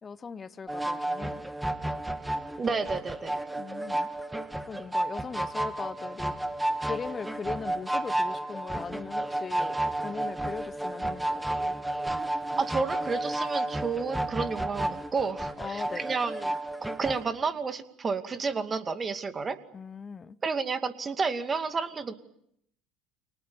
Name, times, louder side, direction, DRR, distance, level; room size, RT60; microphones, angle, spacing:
voice 1, 0.0-1.4 3.6-4.1 4.7-6.3 6.8-11.6 15.6-16.1 19.7-20.4, left 5 dB, 30° left, 1.1 m, -39 dB
sound 1, 0.7-17.2, right 1 dB, 5° right, 1.9 m, -32 dB
voice 2, 2.6-3.4 12.6-19.6 20.4-22.1, right 4 dB, 30° right, 2.4 m, -31 dB
30.0 x 24.5 x 7.2 m
hypercardioid pair, 65°, 0 cm